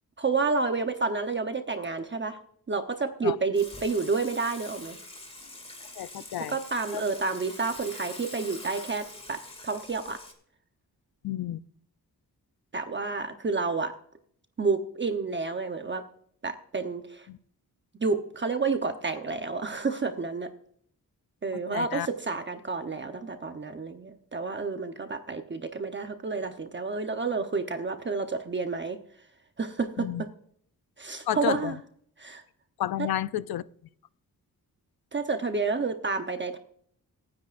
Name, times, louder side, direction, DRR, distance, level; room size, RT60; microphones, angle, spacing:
voice 1, 0.2-2.4 2.7-5.0 6.5-10.2 12.7-13.9 14.6-16.0 16.4-17.3 18.0-20.5 21.4-29.0 29.6-30.1 31.0-31.8 32.2-32.4 33.0-33.1 35.1-36.6, right 4 dB, 30° right, 6 dB, 0.9 m, -30 dB
Water / Water tap faucet / Sink (filling or washing), 3.5-10.3, left 2 dB, 15° left, 2.4 m, -44 dB
voice 2, 6.0-6.6 6.9-7.0 11.2-11.6 17.3-17.4 21.5-22.1 30.0-30.2 31.3-31.7 32.8-33.6, left 12 dB, 80° left, 16 dB, 0.6 m, -31 dB
26.0 x 9.7 x 2.5 m, 0.65 s
wide cardioid pair, 125°, 36 cm